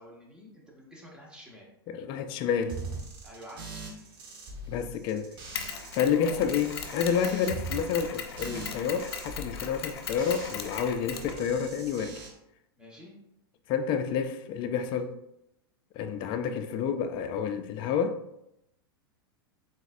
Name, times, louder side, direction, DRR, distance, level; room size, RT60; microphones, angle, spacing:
voice 1, 0.0-1.7 3.2-3.8 6.1-6.5 12.8-13.1, right 1 dB, 5° right, 1.1 m, -47 dB
voice 2, 1.9-2.8 4.7-5.3 5.9-12.2 13.7-15.2 16.0-18.4, left 7 dB, 40° left, 0.4 m, -29 dB
sound 1, 2.7-6.0 6.3-10.8 11.1-12.3, right 3 dB, 40° right, 1.3 m, -42 dB
Mechanisms, 5.5-11.9, left 6 dB, 80° left, 0.6 m, -39 dB
4.0 x 4.0 x 2.5 m
hypercardioid pair, 120°, 13 cm